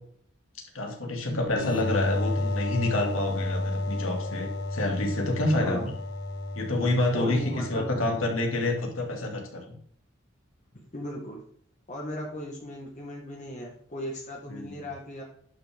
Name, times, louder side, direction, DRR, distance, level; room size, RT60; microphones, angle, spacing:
voice 1, 0.7-5.9 6.5-9.8 14.5-14.8, left 2 dB, 85° left, 1 dB, 2.3 m, -28 dB
sound 1, 1.5-8.9, left 2 dB, 55° left, 1.0 m, -32 dB
voice 2, 7.1-8.2 10.9-11.4 11.9-15.2, equal, 35° left, -1 dB, 1.5 m, -37 dB
11.0 x 6.0 x 3.6 m, 0.63 s
head